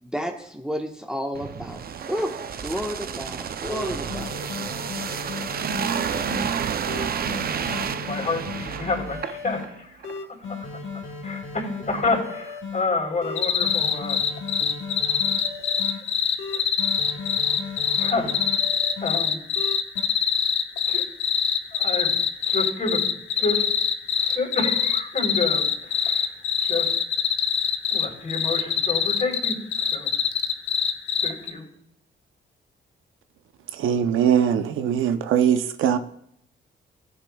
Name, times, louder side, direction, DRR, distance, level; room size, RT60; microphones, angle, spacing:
voice 1, 0.0-1.8 2.1-2.3 2.6-4.4, equal, 5° right, 1 dB, 1.2 m, -31 dB
sound 1, 1.3-9.7 10.0-10.2, right 7 dB, 50° right, 0.5 m, -30 dB
sound 2, 3.3-3.4 3.7-6.5 6.9-9.6 10.0-12.8 13.2-16.0 16.4-19.2 19.6-20.0, left 4 dB, 90° left, 1.6 m, -36 dB
voice 2, 8.0-10.8 11.2-14.2 14.6-14.7 16.5-17.1 18.0-18.4 19.0-19.4 20.9-21.0 21.7-22.1 22.5-23.1 23.4-23.7 24.2-26.3 26.6-26.9 27.9-30.1 31.2-31.7, left 3 dB, 40° left, 1 dB, 3.6 m, -29 dB
sound 3, 13.4-31.5, left 8 dB, 70° left, 0.8 m, -23 dB
voice 3, 33.8-36.0, right 9 dB, 90° right, 9 dB, 0.7 m, -21 dB
14.5 x 8.4 x 2.3 m, 0.71 s
cardioid pair, 75°, 20 cm